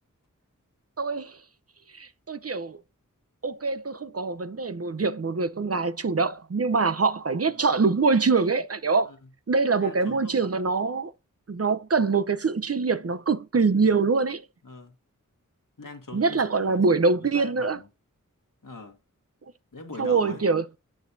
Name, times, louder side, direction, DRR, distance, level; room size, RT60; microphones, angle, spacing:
voice 1, 1.0-1.4 1.9-2.8 3.4-9.1 9.5-11.1 11.5-14.4 16.1-17.8 20.0-20.6, right 4 dB, 45° right, 0.7 m, -24 dB
voice 2, 9.8-10.7 14.6-14.9 15.8-17.9 18.6-19.0 19.7-20.4, left 3 dB, 85° left, 1.7 m, -43 dB
9.5 x 6.4 x 2.7 m
wide cardioid pair, 40°, 32 cm